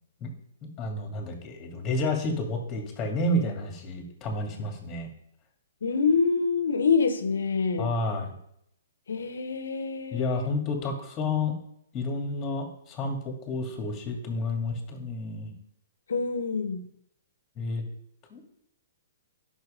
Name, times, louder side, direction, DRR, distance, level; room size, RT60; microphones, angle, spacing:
voice 1, 0.8-5.1 7.8-8.3 10.1-11.6 11.9-15.5 17.6-17.8 18.3-18.4, left 2 dB, 20° left, 2 dB, 2.5 m, -30 dB
voice 2, 5.8-7.9 9.1-10.5 16.1-16.8, left 5 dB, 80° left, 9 dB, 1.2 m, -26 dB
9.4 x 6.2 x 5.3 m, 0.73 s
hypercardioid pair, 140°, 0 cm